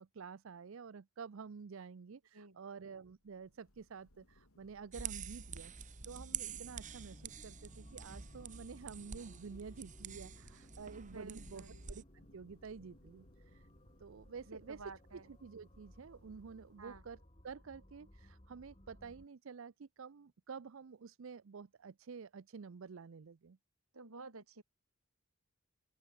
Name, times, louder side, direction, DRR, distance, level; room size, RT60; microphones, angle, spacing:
voice 1, 0.0-13.7 14.0-17.2 17.4-23.6, right 5 dB, 60° right, 0.5 m, -50 dB
Thunder / Rain, 3.1-17.2, left 1 dB, 85° left, 5.9 m, -67 dB
sound 1, 4.9-12.0, right 7 dB, 35° right, 1.6 m, -47 dB
sound 2, 6.6-19.3, left 1 dB, 30° left, 3.1 m, -61 dB
voice 2, 10.9-11.8 14.5-15.3 16.8-17.0 23.9-24.6, right 3 dB, 80° right, 2.6 m, -52 dB
open air
head